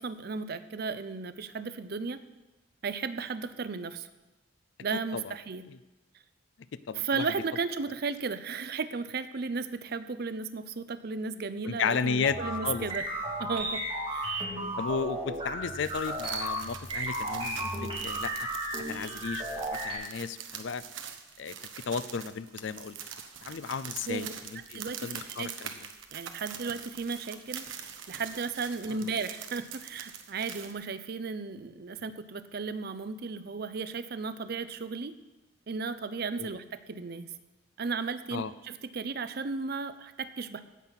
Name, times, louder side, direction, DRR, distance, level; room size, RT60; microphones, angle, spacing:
voice 1, 0.0-2.2 2.8-4.1 4.8-5.6 6.9-13.1 13.4-13.8 14.1-14.4 24.1-24.3 24.7-25.5 26.1-35.2 35.7-37.3 37.8-40.6, right 4 dB, 50° right, 12 dB, 0.6 m, -35 dB
voice 2, 4.9-5.3 6.9-7.2 11.6-12.4 12.6-12.9 14.8-18.5 18.9-20.8 21.4-21.5 21.8-23.0 23.4-25.7 36.4-36.5 38.3-38.5, left 5 dB, 65° left, 15 dB, 0.4 m, -34 dB
sound 1, 12.2-19.9, right 1 dB, 30° right, 3.0 m, -34 dB
sound 2, 15.8-30.7, right 8 dB, 70° right, 1.0 m, -44 dB
16.5 x 5.7 x 5.9 m, 1.1 s
head